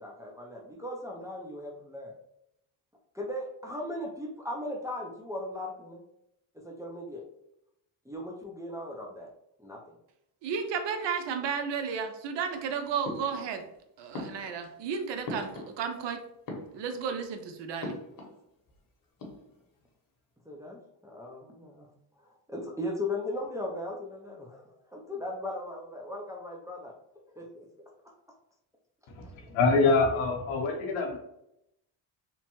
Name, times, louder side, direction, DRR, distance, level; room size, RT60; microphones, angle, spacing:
voice 1, 0.0-2.1 3.1-6.0 6.5-7.2 8.1-9.3 9.6-9.8 20.5-21.9 22.2-26.9 27.3-27.7, left 1 dB, 5° right, -1 dB, 0.4 m, -38 dB
voice 2, 10.4-13.6 14.0-16.2 16.7-18.0, right 6 dB, 60° right, 6 dB, 0.6 m, -33 dB
sound 1, 13.0-13.8 14.1-16.1 16.4-17.2 17.8-18.4 18.7-18.8 19.0-19.8, left 2 dB, 45° left, 1.0 m, -41 dB
voice 3, 29.1-31.2, left 3 dB, 75° left, 2 dB, 0.9 m, -25 dB
3.0 x 2.1 x 2.9 m, 0.80 s
cardioid pair, 90°, 49 cm